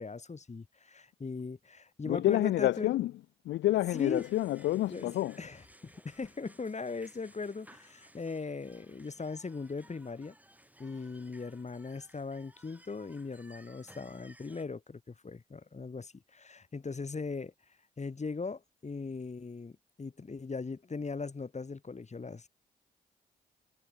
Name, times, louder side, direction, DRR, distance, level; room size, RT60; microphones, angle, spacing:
voice 1, 0.0-2.9 3.9-4.2 4.9-10.3 10.8-17.5 18.0-22.5, left 4 dB, 35° left, 2.7 m, -39 dB
voice 2, 2.1-3.1 3.5-5.4, left 15 dB, 70° left, 0.5 m, -28 dB
sound 1, 3.9-14.6, right 1 dB, 10° right, 6.6 m, -59 dB
hypercardioid pair, 40°, 19 cm